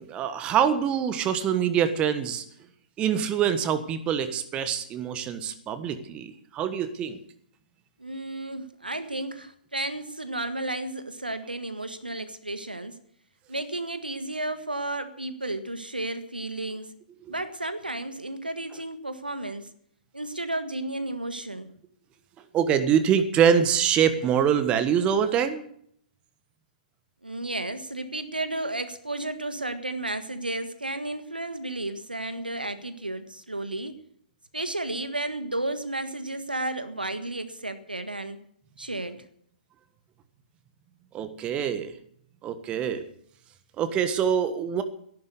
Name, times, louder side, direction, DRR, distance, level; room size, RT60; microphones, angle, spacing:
voice 1, 0.0-2.4 3.0-7.2 17.2-17.3 22.5-25.6 41.1-41.9 42.4-43.0 43.8-44.8, right 8 dB, 20° right, 11 dB, 1.4 m, -24 dB
voice 2, 8.0-13.0 13.5-16.9 17.3-19.7 20.1-21.7 27.2-34.0 34.5-38.4 38.8-39.2, right 2 dB, 85° right, 10 dB, 1.6 m, -33 dB
14.0 x 11.5 x 8.2 m, 0.66 s
figure-of-eight pair, 120°, 5 cm